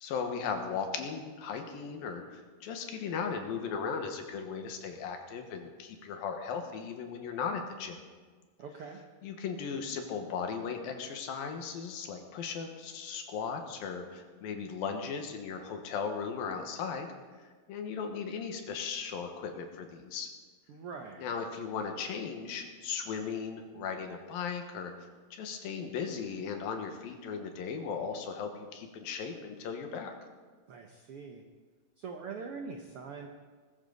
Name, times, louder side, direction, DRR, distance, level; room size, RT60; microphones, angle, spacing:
voice 1, 0.0-8.0 9.2-17.1 17.4-20.3 21.2-30.1, left 6 dB, 90° left, 5 dB, 3.2 m, -37 dB
voice 2, 8.6-9.0 20.7-21.3 30.7-31.4 32.0-33.3, right 5 dB, 80° right, 3 dB, 1.3 m, -43 dB
20.0 x 14.0 x 4.0 m, 1.5 s
omnidirectional pair, 4.0 m